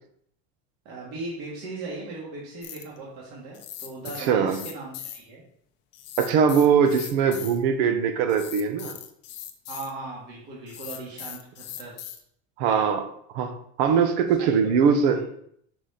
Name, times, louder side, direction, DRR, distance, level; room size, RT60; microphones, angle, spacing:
voice 1, 0.9-5.4 9.7-12.2 14.4-14.6, right 3 dB, 55° right, -5 dB, 1.9 m, -38 dB
sound 1, 2.6-3.0 3.5-5.2 5.9-7.6 8.3-9.9 10.7-12.2, left 11 dB, 35° left, 0.5 m, -39 dB
voice 2, 4.2-4.6 6.2-9.0 12.6-13.1 13.3-15.2, right 6 dB, 80° right, 8 dB, 1.0 m, -21 dB
5.8 x 4.9 x 3.9 m, 0.68 s
cardioid pair, 180°, 33 cm